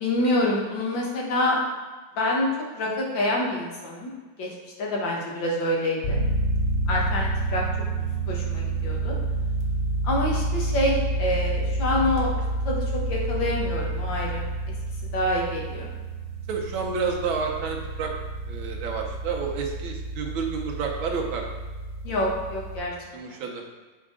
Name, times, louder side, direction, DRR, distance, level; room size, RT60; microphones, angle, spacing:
voice 1, 0.0-1.6 2.2-2.5 2.7-4.1 4.4-4.5 4.8-6.2 6.9-7.6 8.3-9.1 10.0-12.3 12.7-12.8 13.1-14.4 15.1-15.9 22.0-22.9 23.3-23.4, left 1 dB, 65° left, -3 dB, 1.9 m, -26 dB
sound 1, 6.0-22.8, right 2 dB, 40° left, 0.7 m, -29 dB
voice 2, 16.5-18.2 18.5-21.5 23.1-23.6, right 5 dB, 75° right, 1 dB, 1.6 m, -30 dB
7.7 x 4.6 x 3.7 m, 1.3 s
omnidirectional pair, 2.3 m